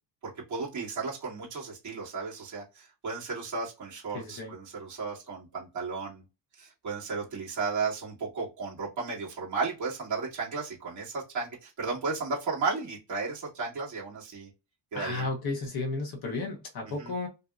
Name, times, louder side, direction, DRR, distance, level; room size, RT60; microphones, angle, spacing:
voice 1, 0.2-6.2 6.6-14.5 14.9-15.3 17.0-17.1, right 4 dB, 35° right, -6 dB, 2.1 m, -34 dB
voice 2, 4.1-4.5 14.9-17.3, left 3 dB, 50° left, 2 dB, 1.2 m, -33 dB
3.7 x 2.7 x 2.4 m, 0.27 s
cardioid pair, 175°, 47 cm